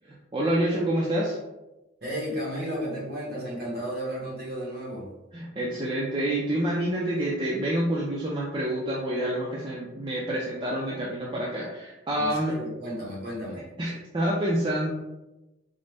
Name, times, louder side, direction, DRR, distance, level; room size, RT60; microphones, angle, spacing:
voice 1, 0.0-1.4 5.3-12.6 13.8-14.9, right 1 dB, 25° right, -4 dB, 0.4 m, -27 dB
voice 2, 2.0-5.1 12.2-13.6, equal, 50° right, -4 dB, 1.2 m, -33 dB
3.8 x 2.1 x 3.3 m, 1.0 s
head